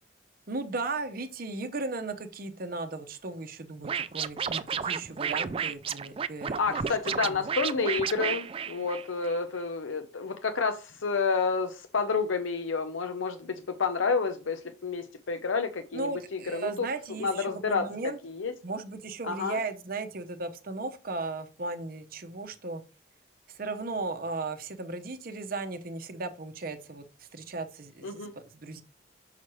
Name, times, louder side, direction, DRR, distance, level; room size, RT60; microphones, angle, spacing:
voice 1, 0.5-7.0 7.3-7.5 15.9-18.2 18.6-22.8 23.5-28.8, right 3 dB, 50° right, 0.7 m, -36 dB
Scratching (performance technique), 3.8-9.3, right 7 dB, 30° right, 0.3 m, -32 dB
voice 2, 6.6-16.1 16.5-16.9 17.2-17.8 18.2-18.5 19.2-19.6 28.0-28.3, left 4 dB, 85° left, 0.7 m, -29 dB
6.1 x 5.7 x 3.1 m
head